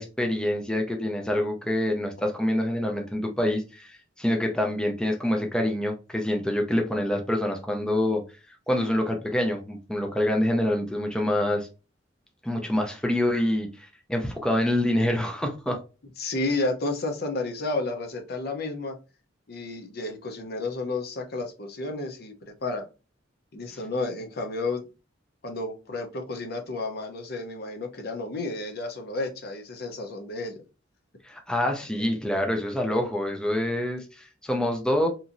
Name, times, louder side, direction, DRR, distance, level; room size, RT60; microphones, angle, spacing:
voice 1, 0.0-8.2 8.7-11.7 12.4-15.8 31.2-35.1, left 1 dB, 5° left, 2 dB, 0.5 m, -26 dB
voice 2, 16.2-19.0 19.5-22.3 22.6-22.8 23.5-24.8 25.4-30.6, left 2 dB, 55° left, 4 dB, 0.7 m, -31 dB
2.9 x 2.6 x 2.5 m, 0.30 s
head